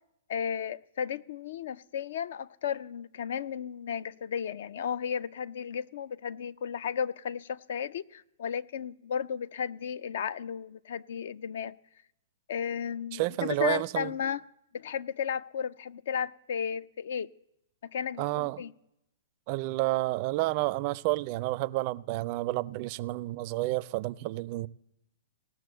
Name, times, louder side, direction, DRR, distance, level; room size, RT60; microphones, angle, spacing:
voice 1, 0.3-11.7 12.5-14.4 14.7-17.3 17.8-18.7, left 8 dB, 65° left, 0.4 m, -34 dB
voice 2, 13.1-14.1 18.2-18.6 19.5-24.7, right 19 dB, 45° right, 0.4 m, -30 dB
17.5 x 6.1 x 7.8 m
hypercardioid pair, 125°, 0 cm